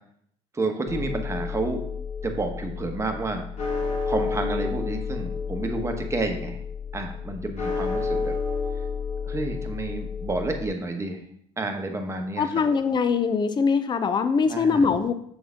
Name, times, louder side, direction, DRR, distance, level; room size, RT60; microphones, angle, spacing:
voice 1, 0.5-1.8 2.2-3.4 4.1-6.6 6.9-8.3 9.3-11.2 11.6-12.4 14.5-14.8, right 2 dB, 20° right, 4 dB, 1.1 m, -30 dB
sound 1, 0.9-10.7, left 5 dB, 50° left, 1.8 m, -30 dB
voice 2, 12.4-15.1, left 5 dB, 30° left, 10 dB, 0.5 m, -22 dB
6.9 x 3.9 x 3.7 m, 0.68 s
supercardioid pair, 85°, 15 cm